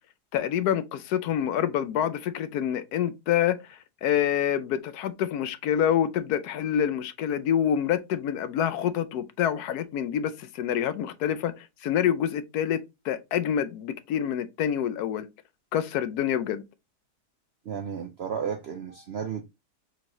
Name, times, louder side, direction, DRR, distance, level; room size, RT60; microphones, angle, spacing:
voice 1, 0.3-12.8 13.0-15.3 15.7-16.6, left 9 dB, 75° left, 1.1 m, -27 dB
voice 2, 17.6-19.5, right 7 dB, 70° right, 0.6 m, -33 dB
5.7 x 3.0 x 2.6 m
omnidirectional pair, 1.7 m